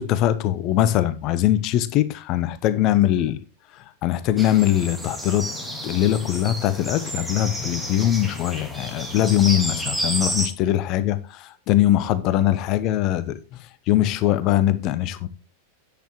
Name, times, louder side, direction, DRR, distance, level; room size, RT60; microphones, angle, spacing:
voice 1, 0.0-3.4 4.0-5.5 5.8-13.4 13.9-15.3, left 12 dB, 40° left, 1.0 m, -21 dB
sound 1, 4.4-10.5, equal, 5° right, 2.7 m, -31 dB
10.5 x 8.9 x 3.0 m
figure-of-eight pair, 90°, 0 cm